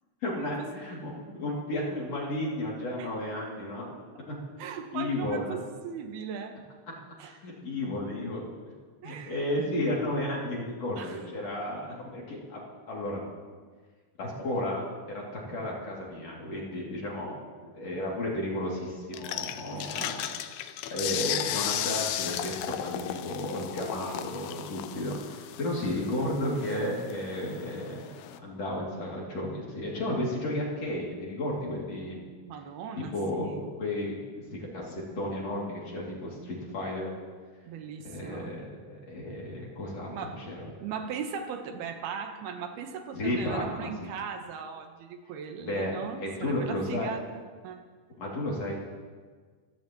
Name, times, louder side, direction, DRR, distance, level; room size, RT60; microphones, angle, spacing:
voice 1, 0.2-4.4 4.9-5.6 7.2-8.5 9.0-12.6 12.9-13.2 14.2-17.3 17.6-20.2 20.9-28.0 28.4-32.2 33.1-33.5 33.8-34.2 34.5-37.1 38.0-40.1 40.5-40.7 43.1-44.1 45.6-45.9 46.2-47.1 48.2-48.8, left 1 dB, 45° left, -4 dB, 3.5 m, -33 dB
voice 2, 4.6-6.6 7.2-7.5 9.0-9.8 11.0-11.2 19.7-20.4 32.4-33.7 37.6-38.5 40.1-40.5 40.8-47.8, right 7 dB, 85° right, 5 dB, 3.0 m, -39 dB
sound 1, 19.1-28.4, left 11 dB, 90° left, 2.7 m, -35 dB
25.0 x 16.0 x 3.0 m, 1.5 s
omnidirectional pair, 4.4 m